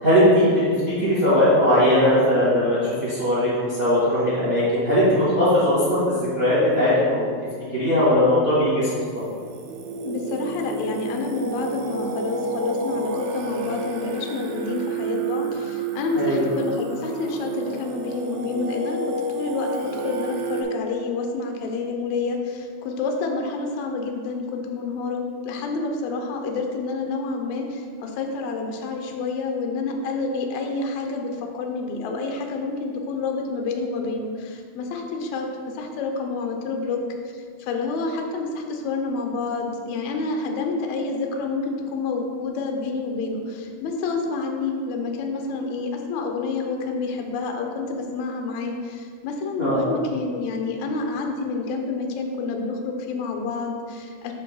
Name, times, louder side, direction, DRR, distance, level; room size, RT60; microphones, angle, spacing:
voice 1, 0.0-0.5 0.9-7.2 7.7-8.9 16.1-16.4 49.6-49.8, left 1 dB, 35° right, -9 dB, 0.8 m, -19 dB
Singing, 9.2-20.6, right 3 dB, 80° right, 2.2 m, -30 dB
voice 2, 10.0-35.5 35.7-37.0 37.3-54.3, left 3 dB, 85° left, 3 dB, 1.6 m, -28 dB
6.7 x 3.2 x 5.5 m, 2.1 s
omnidirectional pair, 4.1 m